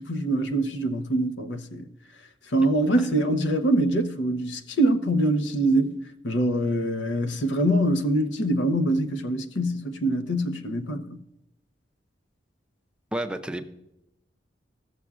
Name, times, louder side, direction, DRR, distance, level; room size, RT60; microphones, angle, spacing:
voice 1, 0.0-1.8 2.5-11.2, right 1 dB, 85° left, 0.8 m, -24 dB
voice 2, 13.1-13.7, right 1 dB, 5° right, 0.5 m, -31 dB
14.0 x 6.9 x 2.4 m
head